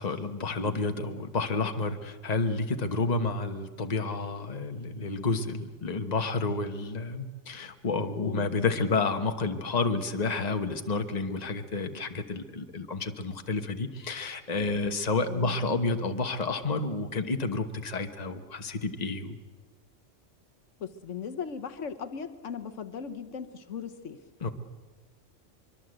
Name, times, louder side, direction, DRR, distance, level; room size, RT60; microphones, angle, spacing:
voice 1, 0.0-19.4 24.4-24.5, left 3 dB, 35° left, 6 dB, 1.3 m, -30 dB
voice 2, 8.1-8.5 15.3-15.5 20.8-24.2, left 7 dB, 80° left, 10 dB, 1.3 m, -38 dB
23.5 x 23.5 x 8.0 m, 1.4 s
omnidirectional pair, 1.3 m